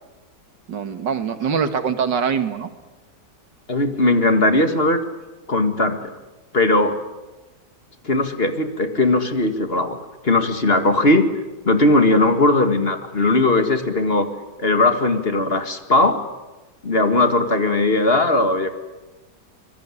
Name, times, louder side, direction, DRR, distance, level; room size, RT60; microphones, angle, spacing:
voice 1, 0.7-2.7, right 6 dB, 85° right, 9 dB, 2.4 m, -23 dB
voice 2, 3.7-5.0 5.5-6.0 6.5-7.0 8.0-10.0 10.2-11.2 11.6-14.3 14.6-16.2 16.8-18.7, left 2 dB, 35° left, 7 dB, 2.1 m, -18 dB
25.5 x 22.0 x 10.0 m, 1.1 s
omnidirectional pair, 1.9 m